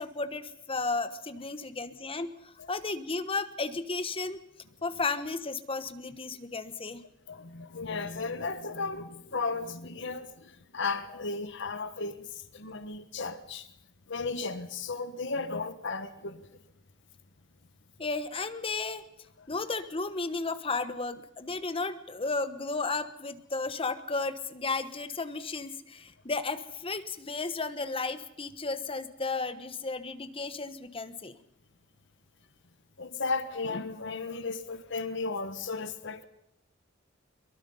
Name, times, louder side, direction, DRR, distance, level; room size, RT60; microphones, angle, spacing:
voice 1, 0.0-4.4 4.8-7.0 18.0-19.0 19.5-31.4, left 3 dB, 30° left, 1.2 m, -34 dB
voice 2, 7.3-12.3 12.5-13.7 14.1-16.4 33.0-36.2, left 4 dB, 65° left, 1.3 m, -35 dB
23.5 x 22.5 x 5.6 m
head